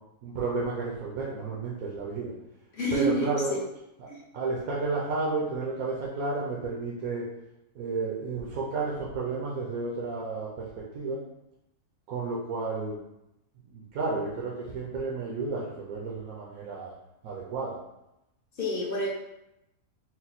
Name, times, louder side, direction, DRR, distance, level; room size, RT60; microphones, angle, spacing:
voice 1, 0.2-2.3 2.9-3.5 4.0-4.1 4.3-7.2 7.7-10.7 10.9-11.2 12.1-13.0 13.7-16.9 17.2-17.7, right 3 dB, 75° right, -4 dB, 1.1 m, -32 dB
voice 2, 2.7-3.6 4.1-4.2 18.5-19.1, equal, 45° left, -3 dB, 0.9 m, -29 dB
4.2 x 2.1 x 4.0 m, 0.88 s
omnidirectional pair, 1.5 m